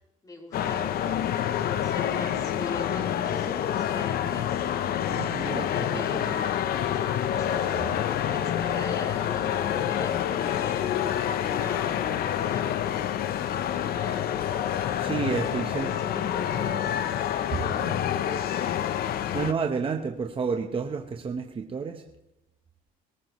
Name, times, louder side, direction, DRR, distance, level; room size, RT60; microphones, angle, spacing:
voice 1, 0.2-1.3 1.6-4.5 5.3-6.3 6.6-13.0 13.5-14.3 15.5-16.9 17.6-18.1, left 1 dB, 20° left, -1 dB, 3.9 m, -41 dB
sound 1, 0.5-19.5, left 10 dB, 65° left, 0.8 m, -28 dB
voice 2, 5.1-6.4 15.0-15.9 17.6-17.9 19.0-22.0, right 5 dB, 30° right, 4 dB, 1.1 m, -31 dB
sound 2, 5.4-13.4, left 10 dB, 90° left, 1.0 m, -39 dB
22.5 x 14.0 x 3.2 m, 0.89 s
cardioid pair, 110°, 17 cm